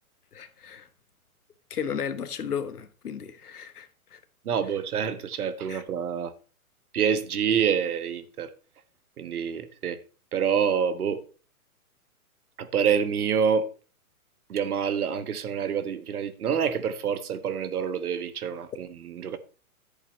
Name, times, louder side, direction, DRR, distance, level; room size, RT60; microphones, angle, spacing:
voice 1, 0.3-0.9 1.7-4.2 5.7-5.8, left 7 dB, 90° left, 1.4 m, -34 dB
voice 2, 4.4-6.3 6.9-8.5 9.2-10.0 10.3-11.2 12.6-13.7 14.5-19.4, right 7 dB, 75° right, 1.4 m, -27 dB
11.0 x 8.0 x 3.1 m
hypercardioid pair, 130°, 44 cm